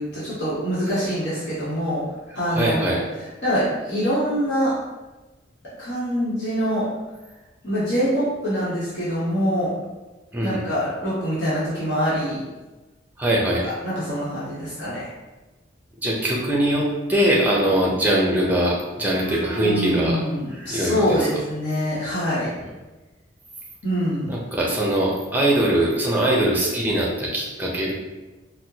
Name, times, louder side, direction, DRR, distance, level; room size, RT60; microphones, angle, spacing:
voice 1, 0.0-2.0 2.3-3.0 3.4-4.7 5.8-6.8 7.6-9.7 10.4-12.4 13.6-15.1 19.2-22.5 23.8-24.3, equal, 65° left, -11 dB, 1.1 m, -24 dB
voice 2, 2.5-3.0 10.3-10.6 13.2-13.7 16.0-20.2 20.5-21.3 24.3-27.9, right 1 dB, 10° right, -3 dB, 0.6 m, -22 dB
4.2 x 2.1 x 2.8 m, 1.1 s
head